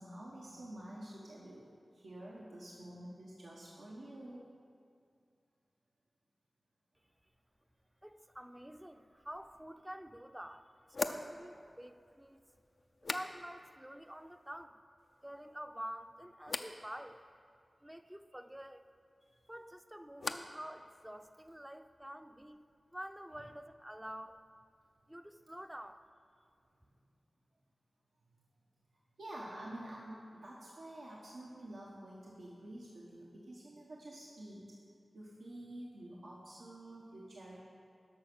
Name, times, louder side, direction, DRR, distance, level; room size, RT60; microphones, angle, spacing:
voice 1, 0.0-4.5 29.2-34.8 35.1-37.6, right 1 dB, 85° right, -5 dB, 1.1 m, -49 dB
voice 2, 8.0-12.4 13.1-14.8 15.2-17.2 17.8-18.9 19.5-22.7 22.9-24.4 25.1-26.0, equal, 10° right, 9 dB, 0.5 m, -48 dB
sound 1, 9.7-9.8 10.9-13.8 14.0-14.6 15.0-15.6 16.4-16.8 19.2-20.7 20.9-21.5, left 3 dB, 65° left, 0.5 m, -44 dB
10.5 x 6.3 x 6.0 m, 2.3 s
cardioid pair, 50°, 0 cm